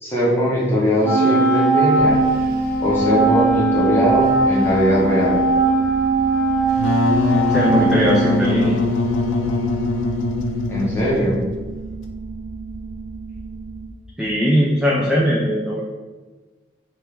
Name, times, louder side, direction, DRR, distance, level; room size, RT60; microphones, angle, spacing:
voice 1, 0.0-2.2 2.8-5.4 10.7-11.4, equal, 10° left, -7 dB, 1.1 m, -20 dB
Wind instrument woodwind instrument, 1.0-8.7, right 3 dB, 50° right, 1.4 m, -19 dB
sound 1, 1.9-13.9, right 3 dB, 75° right, 1.1 m, -34 dB
Wind instrument woodwind instrument 2, 6.7-11.3, left 2 dB, 85° left, 0.4 m, -22 dB
voice 2, 7.5-8.8 14.2-15.8, equal, 5° right, -6 dB, 0.4 m, -19 dB
3.2 x 3.0 x 3.4 m, 1.3 s
head